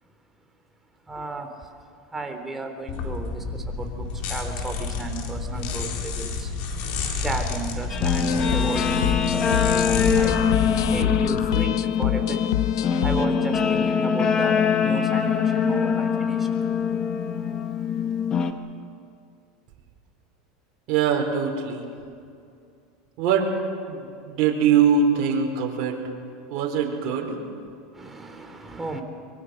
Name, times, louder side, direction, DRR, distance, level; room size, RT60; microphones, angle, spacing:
voice 1, 1.1-1.7 2.1-6.5 7.1-10.4 10.9-12.5 13.0-16.5 16.9-17.0 27.9-29.0, right 3 dB, 15° right, 4 dB, 3.4 m, -34 dB
sound 1, 2.9-11.5, left 4 dB, 60° left, 4.1 m, -30 dB
Guitar, 7.9-18.5, left 6 dB, 30° left, 1.5 m, -23 dB
sound 2, 8.0-13.3, left 14 dB, 85° left, 0.7 m, -27 dB
voice 2, 20.9-21.9 23.2-23.5 23.9-26.0 26.5-27.3, right 7 dB, 55° right, 1 dB, 4.5 m, -22 dB
24.0 x 23.0 x 6.5 m, 2.4 s
supercardioid pair, 110°, 2 cm